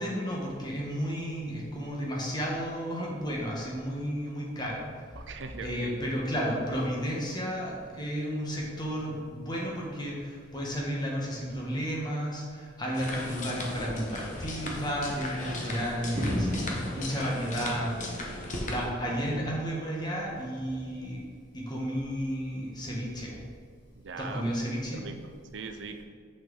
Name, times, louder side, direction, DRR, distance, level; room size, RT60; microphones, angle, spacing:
voice 1, 0.0-4.9 5.6-16.6 16.9-18.0 18.6-21.2 21.5-23.4 24.2-25.1, equal, 20° left, -3 dB, 1.4 m, -32 dB
voice 2, 5.2-6.0 24.0-24.5 24.9-26.0, right 4 dB, 65° right, 6 dB, 0.5 m, -41 dB
sound 1, 12.9-18.9, left 1 dB, 40° left, 1.0 m, -37 dB
sound 2, 16.2-18.4 18.8-19.7 20.6-20.9 21.9-22.1, equal, 10° right, 1.3 m, -35 dB
6.1 x 5.8 x 3.9 m, 2.1 s
head